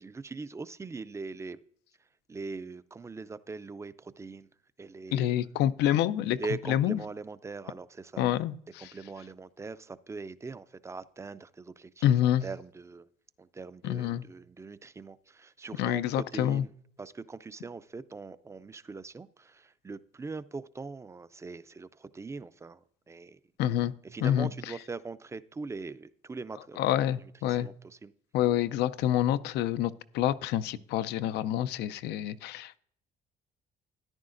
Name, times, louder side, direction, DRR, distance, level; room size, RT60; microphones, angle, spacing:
voice 1, 0.0-1.6 2.3-4.5 4.8-5.4 6.4-8.2 8.8-13.1 13.4-16.7 17.0-23.4 24.1-26.9 27.5-28.1, right 4 dB, 15° right, 15 dB, 0.4 m, -41 dB
voice 2, 5.1-6.4 6.7-7.0 8.2-8.9 12.0-12.5 13.8-14.2 15.8-16.6 23.6-23.9 24.2-24.7 26.8-27.7 28.3-32.8, left 11 dB, 85° left, 14 dB, 0.5 m, -27 dB
13.5 x 10.5 x 2.5 m, 0.62 s
cardioid pair, 110°, 17 cm